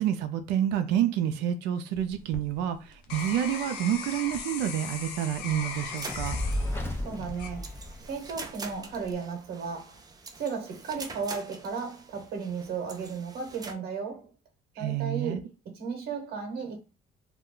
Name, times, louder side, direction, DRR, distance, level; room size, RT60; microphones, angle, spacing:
voice 1, 0.0-6.4 14.8-15.4, right 10 dB, 90° right, 0.5 m, -28 dB
sound 1, 1.9-8.2 8.7-9.1, left 6 dB, 90° left, 0.6 m, -39 dB
sound 2, 5.9-13.7, right 4 dB, 20° right, 0.4 m, -45 dB
Fire, 6.1-8.5, left 1 dB, 15° left, 0.7 m, -33 dB
voice 2, 7.0-10.0 10.4-14.3 14.8-16.8, right 5 dB, 70° right, 1.0 m, -35 dB
2.4 x 2.2 x 3.6 m
cardioid pair, 110°, 17 cm